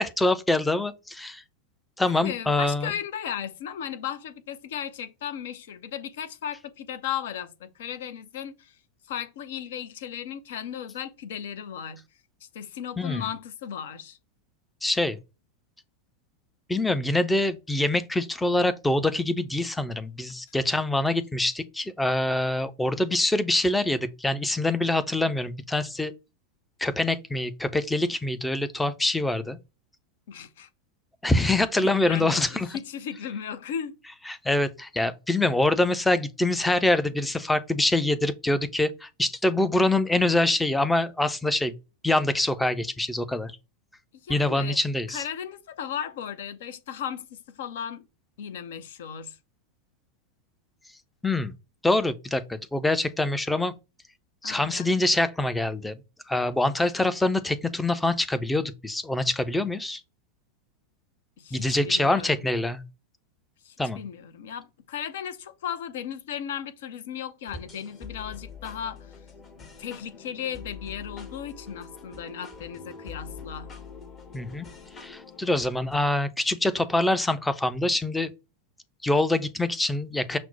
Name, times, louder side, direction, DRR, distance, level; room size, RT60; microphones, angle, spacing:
voice 1, 0.0-1.4 2.0-2.9 13.0-13.2 14.8-15.2 16.7-26.1 26.8-29.6 31.2-32.8 34.3-41.7 42.0-43.5 44.3-45.2 51.2-51.5 51.8-53.8 54.4-55.9 56.3-60.0 61.5-62.8 63.8-64.0 74.3-74.7 75.0-78.3 79.0-80.4, left 2 dB, 5° left, 0.5 m, -25 dB
voice 2, 2.1-8.8 9.0-12.0 12.4-14.2 30.3-30.7 31.8-34.0 44.2-44.8 45.1-48.1 48.4-49.4 54.4-54.9 61.4-62.4 63.6-69.1 69.8-73.7, left 9 dB, 55° left, 0.5 m, -36 dB
sound 1, 67.5-76.0, left 5 dB, 25° left, 0.9 m, -44 dB
5.9 x 2.1 x 3.9 m
figure-of-eight pair, 90°, 0 cm